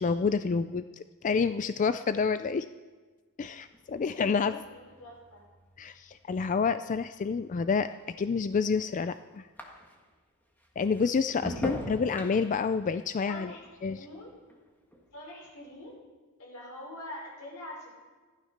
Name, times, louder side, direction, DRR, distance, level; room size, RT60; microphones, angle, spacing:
voice 1, 0.0-2.7 3.4-4.6 5.8-9.5 10.8-13.5 13.8-14.1, left 5 dB, 35° left, 12 dB, 0.3 m, -28 dB
sound 1, 3.5-10.2 10.6-15.1 15.4-15.9, equal, 10° left, 1.7 m, -44 dB
voice 2, 4.3-5.5 13.2-14.3 15.1-16.0 16.4-17.9, left 1 dB, 90° left, -2 dB, 5.5 m, -45 dB
15.0 x 12.5 x 5.9 m, 1.4 s
head